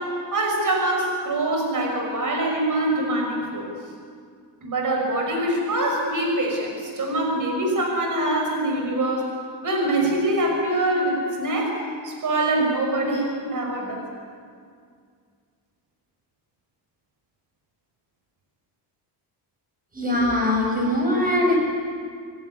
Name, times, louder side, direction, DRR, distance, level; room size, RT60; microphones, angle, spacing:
voice 1, 0.0-3.7 4.6-14.1, right 1 dB, 45° right, 1 dB, 5.8 m, -24 dB
voice 2, 19.9-21.5, left 1 dB, 20° right, 0 dB, 7.6 m, -21 dB
27.0 x 16.5 x 9.7 m, 2.2 s
cardioid pair, 140°, 44 cm